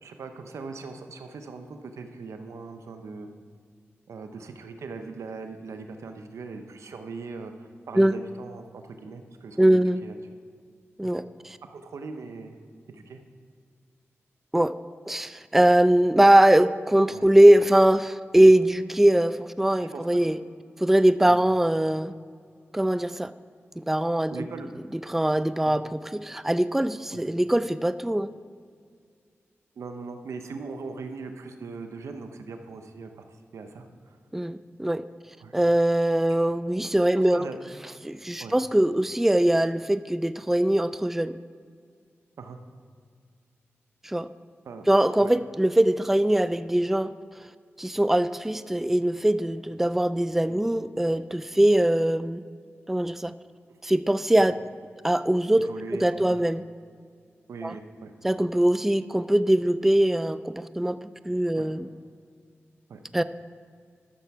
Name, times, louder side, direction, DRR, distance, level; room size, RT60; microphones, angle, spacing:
voice 1, 0.0-3.3 4.1-10.2 11.0-11.1 11.7-12.6 12.9-13.2 17.1-17.2 19.9-20.2 21.3-21.4 24.3-24.8 25.6-25.8 27.1-27.2 29.8-33.1 33.5-34.2 35.4-35.5 36.3-36.4 37.2-37.6 38.4-38.6 42.4-42.6 44.6-44.9 45.2-45.3 50.4-50.7 55.7-56.5 57.5-58.1 61.6-61.7 62.9-63.2, right 4 dB, 90° right, 6 dB, 0.7 m, -40 dB
voice 2, 9.6-10.0 11.0-11.6 14.5-14.7 15.1-20.4 20.8-22.1 22.7-23.3 23.8-24.5 25.1-28.3 34.3-35.0 35.5-37.5 38.0-41.4 44.0-44.3 44.9-47.1 47.8-52.4 52.9-53.3 53.8-54.6 55.0-55.7 56.0-56.6 57.6-57.7 58.2-61.0 61.3-61.9 63.1-63.2, right 1 dB, 5° right, 14 dB, 0.3 m, -21 dB
12.5 x 6.8 x 4.7 m, 2.1 s
cardioid pair, 55°, 5 cm